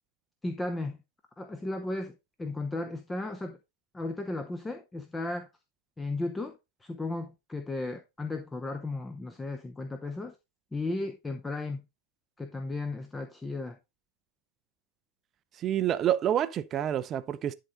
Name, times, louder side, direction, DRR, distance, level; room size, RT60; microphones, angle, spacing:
voice 1, 0.4-1.0 1.4-3.6 3.9-5.5 6.0-10.3 10.7-11.8 12.4-13.8, left 2 dB, 10° left, 0.8 m, -35 dB
voice 2, 15.6-17.5, right 11 dB, 30° right, 0.5 m, -28 dB
11.0 x 3.8 x 4.0 m
figure-of-eight pair, 90°, 0 cm